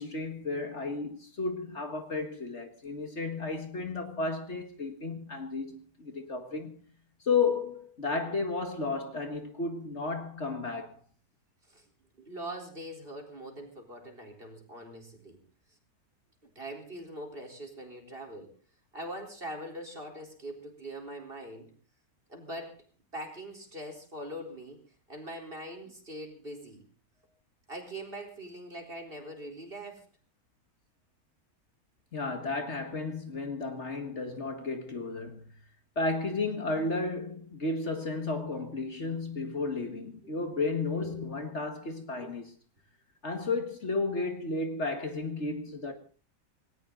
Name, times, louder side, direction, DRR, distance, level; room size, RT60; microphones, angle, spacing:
voice 1, 0.0-6.8 7.2-11.0 32.1-35.4 36.0-42.5 43.2-45.9, left 3 dB, 50° left, 2.1 m, -33 dB
voice 2, 12.2-15.4 16.6-18.5 18.9-21.7 22.3-22.8 23.1-24.8 25.1-26.8 27.7-30.1 40.2-40.3 41.0-41.3 42.2-42.3, right 1 dB, 35° right, 4.3 m, -42 dB
19.0 x 18.0 x 3.9 m
omnidirectional pair, 1.6 m